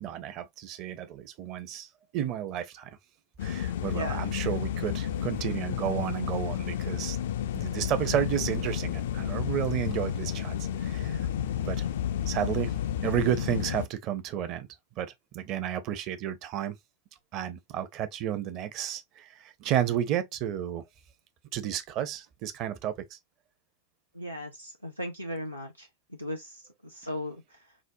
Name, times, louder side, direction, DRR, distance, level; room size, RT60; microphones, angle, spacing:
voice 1, 0.0-1.9 2.1-2.9 3.4-7.2 7.5-11.3 11.6-11.9 12.3-12.7 13.0-14.7 15.0-16.8 17.3-20.8 21.5-22.9, right 11 dB, 40° right, 0.6 m, -32 dB
sound 1, 3.4-13.9, left 10 dB, 60° left, 0.3 m, -31 dB
voice 2, 3.9-4.3 24.1-25.9 26.2-27.4, equal, 85° right, 0.5 m, -37 dB
4.9 x 2.1 x 2.6 m
figure-of-eight pair, 90°, 0 cm